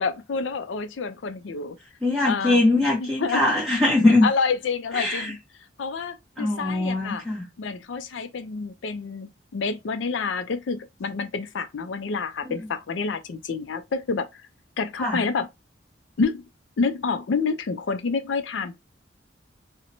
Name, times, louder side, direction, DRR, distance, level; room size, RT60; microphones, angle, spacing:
voice 1, 0.0-1.8 2.2-2.6 3.0-3.4 4.2-5.4 5.8-7.2 7.6-14.3 14.8-15.5 16.2-16.4 16.8-18.8, left 4 dB, 85° left, 0.4 m, -28 dB
voice 2, 2.0-4.3 4.9-5.3 6.4-7.5 12.4-12.5 15.0-15.2, left 2 dB, ahead, 0.8 m, -21 dB
2.9 x 2.1 x 2.5 m
head